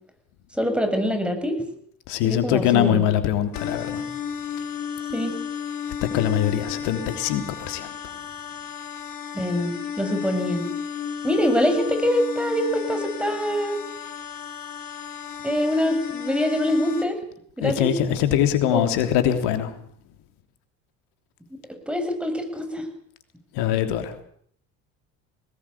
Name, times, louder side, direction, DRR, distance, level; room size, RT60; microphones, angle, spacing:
voice 1, 0.5-1.6 2.2-3.0 5.1-5.4 9.3-10.6 11.2-13.8 15.4-17.2 17.6-17.9 18.7-18.8 21.9-22.9, equal, 5° right, 7 dB, 7.3 m, -24 dB
voice 2, 2.1-4.0 6.1-7.9 17.6-19.7 23.5-24.2, left 10 dB, 75° left, 8 dB, 3.4 m, -22 dB
sound 1, 3.5-17.0, left 8 dB, 55° left, 4.9 m, -33 dB
22.0 x 19.0 x 8.7 m, 0.64 s
hypercardioid pair, 65°, 41 cm